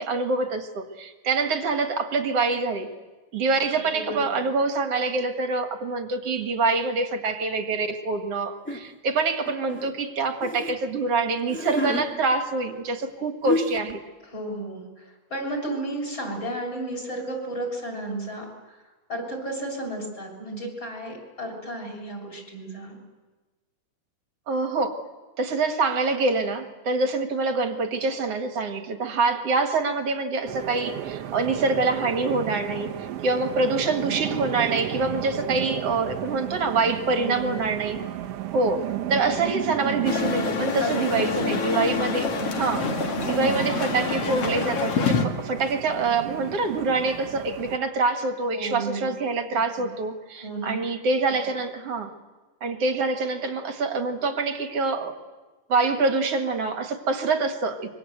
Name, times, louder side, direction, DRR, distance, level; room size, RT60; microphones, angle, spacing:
voice 1, 0.0-2.9 3.3-14.0 24.5-25.0 25.4-38.0 38.5-52.1 52.6-55.1 55.7-57.9, right 3 dB, 50° right, 6 dB, 2.2 m, -25 dB
voice 2, 3.7-4.2 14.3-18.8 19.1-23.0 37.1-37.6 40.8-41.5 48.5-49.1 50.4-50.8, right 1 dB, 30° left, 2 dB, 7.4 m, -33 dB
sound 1, 8.6-8.8 9.5-10.7 11.4-12.1 13.1-13.2 13.4-13.9, left 1 dB, 10° left, 0.7 m, -29 dB
sound 2, 30.4-47.8, right 12 dB, 80° right, 1.4 m, -34 dB
sound 3, 40.0-45.2, left 5 dB, 50° left, 2.5 m, -26 dB
26.0 x 23.5 x 8.0 m, 1.2 s
omnidirectional pair, 4.2 m